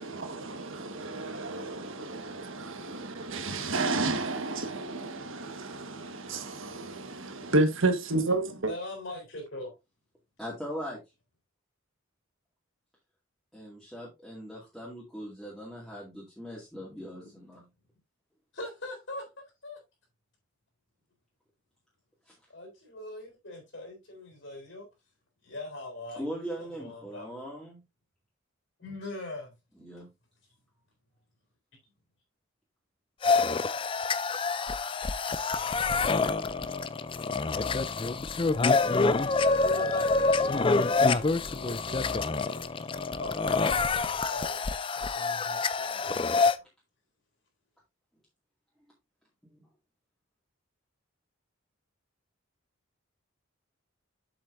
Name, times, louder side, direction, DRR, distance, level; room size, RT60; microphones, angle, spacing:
voice 1, 0.0-8.7, right 2 dB, 70° right, 1.5 m, -31 dB
voice 2, 8.7-9.7 17.2-17.3 18.5-19.8 22.5-24.9 25.4-27.3 28.8-29.5 39.5-46.3, left 1 dB, 60° left, 3.8 m, -42 dB
voice 3, 10.4-11.0 13.5-17.7 22.3-22.4 26.2-27.8 29.8-30.1 49.4-49.6, equal, ahead, 2.2 m, -40 dB
sound 1, 33.2-46.5, left 3 dB, 25° left, 0.4 m, -27 dB
7.9 x 7.5 x 2.6 m
head